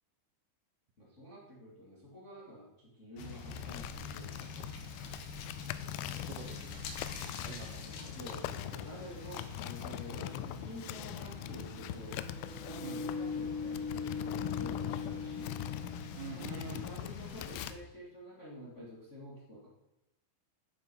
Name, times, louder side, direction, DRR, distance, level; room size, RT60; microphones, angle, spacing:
voice 1, 1.0-4.7 7.8-12.2 12.6-15.6 16.4-19.7, equal, 25° left, -5 dB, 1.9 m, -49 dB
sound 1, 3.2-17.7, left 5 dB, 65° left, 2.6 m, -45 dB
sound 2, 3.5-17.7, left 15 dB, 85° left, 3.0 m, -43 dB
voice 2, 6.2-6.9 7.4-8.1 12.8-13.1 16.1-16.9, right 5 dB, 70° right, 4 dB, 2.8 m, -46 dB
sound 3, 9.7-16.5, left 4 dB, 55° right, 5.1 m, -42 dB
11.0 x 8.3 x 5.6 m, 0.90 s
omnidirectional pair, 5.5 m